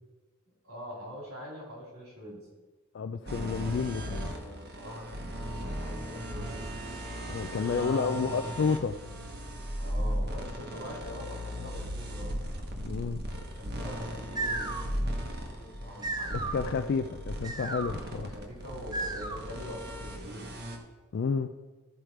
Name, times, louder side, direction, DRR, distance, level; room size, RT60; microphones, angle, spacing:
voice 1, 0.6-2.4 3.9-6.6 7.4-8.6 9.8-12.3 13.5-14.7 15.0-16.4 18.1-20.5, equal, 75° right, -3 dB, 3.5 m, -44 dB
voice 2, 2.9-4.3 7.3-9.0 12.8-13.2 16.3-18.3 21.1-21.5, left 5 dB, 55° left, 7 dB, 0.3 m, -30 dB
sound 1, 3.3-20.8, equal, 45° right, 1.1 m, -37 dB
sound 2, 14.2-19.7, right 2 dB, 20° right, 0.6 m, -37 dB
13.5 x 5.0 x 4.6 m, 1.2 s
head